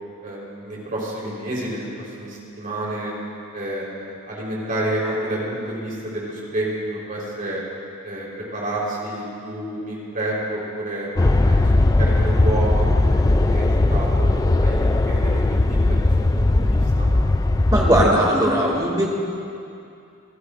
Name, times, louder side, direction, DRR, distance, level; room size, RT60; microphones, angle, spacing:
voice 1, 0.2-3.1 3.5-7.6 8.0-8.3 8.5-11.1 11.5-11.6 12.0-16.0 16.4-17.1, right 1 dB, 40° right, -5 dB, 4.0 m, -29 dB
sound 1, 11.2-18.1, left 2 dB, 15° left, 0.3 m, -18 dB
voice 2, 17.7-19.1, right 1 dB, 20° right, -2 dB, 2.3 m, -18 dB
25.5 x 15.0 x 2.6 m, 2.6 s
head